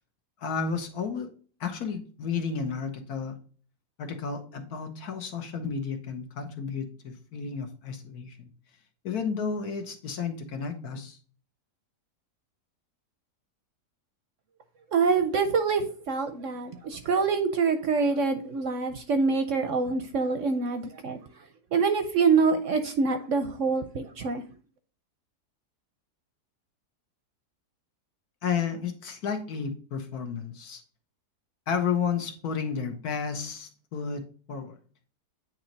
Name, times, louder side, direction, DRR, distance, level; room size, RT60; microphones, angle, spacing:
voice 1, 0.4-1.3 1.6-3.4 4.0-8.5 9.0-11.2 28.4-30.8 31.7-34.2 34.5-34.7, left 6 dB, 70° left, 1.5 m, -32 dB
voice 2, 14.9-21.2 21.7-24.4, right 4 dB, 60° right, 0.9 m, -25 dB
9.0 x 3.1 x 3.9 m
omnidirectional pair, 1.7 m